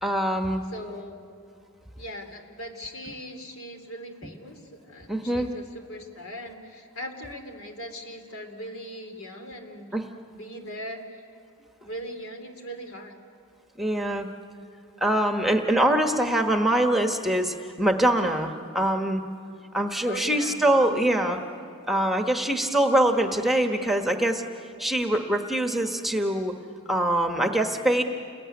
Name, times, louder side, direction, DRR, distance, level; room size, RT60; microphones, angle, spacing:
voice 1, 0.0-0.6 5.1-5.5 9.9-10.0 13.8-14.3 15.0-19.2 19.7-21.4 21.9-24.4 24.8-26.6 26.9-28.0, right 1 dB, ahead, 4 dB, 1.2 m, -23 dB
voice 2, 0.6-1.2 2.0-9.9 10.4-11.2 11.8-13.2 20.0-20.7, equal, 70° left, 5 dB, 3.1 m, -39 dB
29.5 x 21.0 x 9.6 m, 2.6 s
head